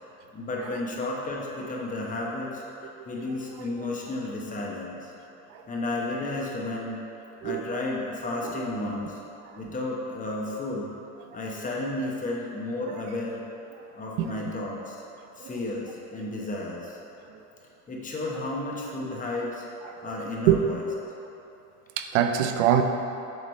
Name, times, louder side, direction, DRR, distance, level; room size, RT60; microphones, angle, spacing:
voice 1, 0.3-2.6 3.1-5.1 5.7-7.0 7.4-9.2 9.5-10.9 11.3-13.4 13.9-15.0 15.4-17.0 17.9-19.6 20.0-20.8, left 2 dB, 20° left, -2 dB, 1.0 m, -32 dB
voice 2, 19.8-20.2 20.5-20.6 22.0-22.8, right 10 dB, 70° right, 6 dB, 0.6 m, -25 dB
7.9 x 3.1 x 5.3 m, 3.0 s
supercardioid pair, 120°, 37 cm